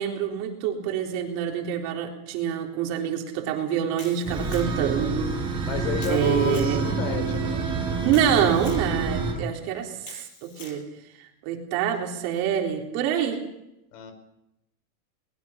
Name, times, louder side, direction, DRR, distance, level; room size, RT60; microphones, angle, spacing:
voice 1, 0.0-5.7 6.1-7.0 8.0-10.8 11.2-13.4, right 9 dB, 45° right, 1 dB, 3.8 m, -26 dB
Camera, 4.0-4.9 6.0-6.7 8.1-8.9 10.0-10.8, left 4 dB, 35° left, 5.9 m, -45 dB
sound 1, 4.3-9.3, right 4 dB, 10° right, 5.5 m, -28 dB
voice 2, 5.6-7.7 13.9-14.1, left 7 dB, 55° left, 8 dB, 5.2 m, -31 dB
22.5 x 21.0 x 5.8 m, 0.87 s
supercardioid pair, 175°, 44 cm